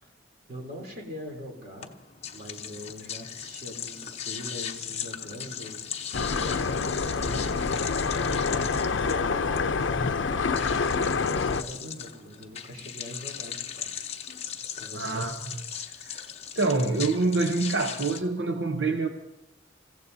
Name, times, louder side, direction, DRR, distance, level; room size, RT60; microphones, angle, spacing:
voice 1, 0.5-1.9 2.3-5.9 6.1-14.1 14.8-15.2, left 1 dB, 50° right, 0 dB, 3.3 m, -42 dB
sound 1, 1.8-18.2, left 8 dB, 35° left, 0.9 m, -38 dB
sound 2, 6.1-11.6, left 4 dB, 85° left, 0.6 m, -27 dB
voice 2, 14.9-15.6 16.0-16.3 16.5-19.1, right 3 dB, 80° right, 4 dB, 0.9 m, -26 dB
28.5 x 16.0 x 2.7 m, 0.93 s
head